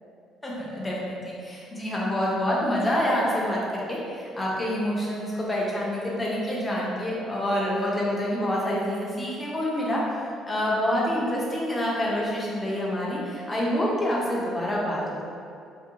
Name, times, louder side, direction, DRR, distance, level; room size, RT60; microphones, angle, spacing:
voice 1, 0.4-10.0 10.5-15.2, equal, 15° left, -5 dB, 0.5 m, -27 dB
2.5 x 2.1 x 2.7 m, 2.4 s
cardioid pair, 140°, 0 cm